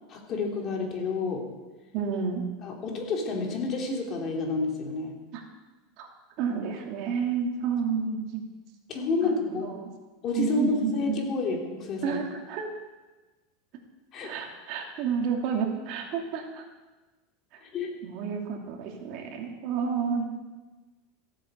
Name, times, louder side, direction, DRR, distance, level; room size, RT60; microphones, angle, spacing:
voice 1, 0.1-1.5 2.6-5.2 8.9-9.7 10.2-12.2 14.1-14.3 17.6-17.9, left 3 dB, 35° left, 1 dB, 3.4 m, -29 dB
voice 2, 1.9-2.4 5.3-5.4 6.0-6.1 6.4-8.4 9.2-9.9 10.3-11.2 12.0-12.7 14.2-16.6 18.0-20.2, right 6 dB, 50° right, 1 dB, 2.8 m, -30 dB
15.5 x 9.1 x 8.2 m, 1.2 s
supercardioid pair, 140°, 0 cm